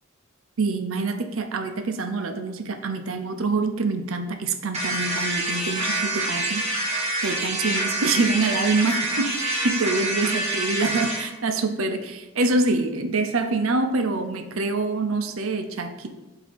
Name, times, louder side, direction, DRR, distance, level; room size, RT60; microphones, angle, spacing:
voice 1, 0.6-6.7 7.2-16.1, right 3 dB, 85° right, 7 dB, 0.6 m, -25 dB
sound 1, 4.7-11.2, right 2 dB, 30° right, 1.6 m, -26 dB
7.9 x 2.8 x 5.1 m, 1.1 s
head